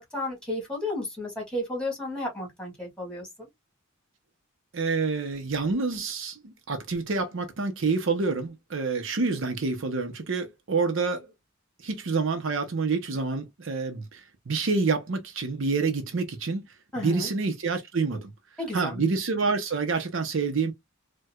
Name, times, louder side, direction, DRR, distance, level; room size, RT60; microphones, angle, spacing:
voice 1, 0.0-3.5 16.9-17.3 18.6-19.0, left 1 dB, 5° left, 2.0 m, -33 dB
voice 2, 4.7-11.3 11.8-16.6 17.0-18.3 18.7-20.7, right 4 dB, 65° right, 0.7 m, -27 dB
4.5 x 2.2 x 2.3 m
head